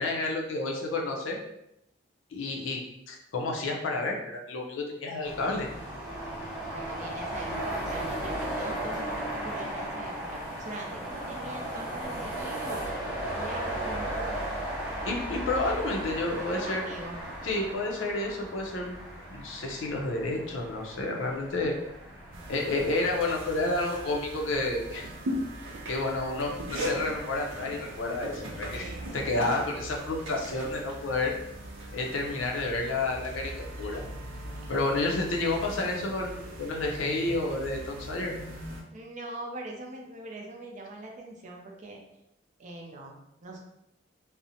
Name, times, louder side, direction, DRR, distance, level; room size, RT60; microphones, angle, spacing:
voice 1, 0.0-1.4 2.3-2.8 3.1-5.7 15.0-16.9 17.4-19.0 19.3-21.7 22.5-25.1 25.9-31.3 31.9-33.5 33.8-34.0 34.7-38.3, left 2 dB, 80° left, 1 dB, 0.5 m, -30 dB
sound 1, 5.2-23.7, right 1 dB, 5° right, 0.8 m, -36 dB
voice 2, 6.6-12.8 13.4-14.6 16.3-17.2 22.1-22.5 28.4-29.3 38.9-42.0 42.6-43.6, right 2 dB, 40° right, 0 dB, 0.4 m, -42 dB
sound 2, 22.3-38.8, equal, 85° right, 0.6 m, -39 dB
2.5 x 2.0 x 2.7 m, 0.83 s
head